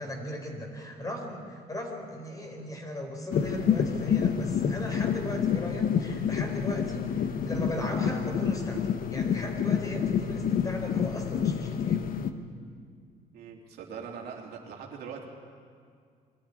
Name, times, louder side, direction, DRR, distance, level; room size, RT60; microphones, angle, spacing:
voice 1, 0.0-12.1, equal, 20° left, 2 dB, 4.4 m, -37 dB
sound 1, 3.3-12.3, left 7 dB, 55° left, 1.2 m, -28 dB
voice 2, 13.3-15.2, right 6 dB, 70° right, -1 dB, 3.3 m, -41 dB
23.0 x 13.5 x 9.8 m, 2.2 s
cardioid pair, 110°, 17 cm